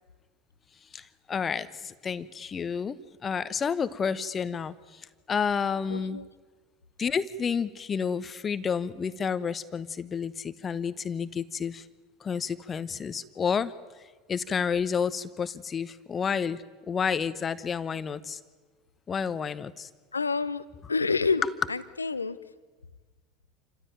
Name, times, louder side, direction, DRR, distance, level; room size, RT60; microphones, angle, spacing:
voice 1, 0.9-6.2 7.0-11.9 12.2-13.7 14.3-18.4 19.1-19.9, left 6 dB, 30° left, 15 dB, 1.0 m, -30 dB
voice 2, 5.9-6.3 20.1-20.6 20.9-21.4 21.7-22.4, left 4 dB, 90° left, 15 dB, 0.9 m, -28 dB
28.0 x 15.5 x 9.1 m, 1.4 s
figure-of-eight pair, 75°, 0 cm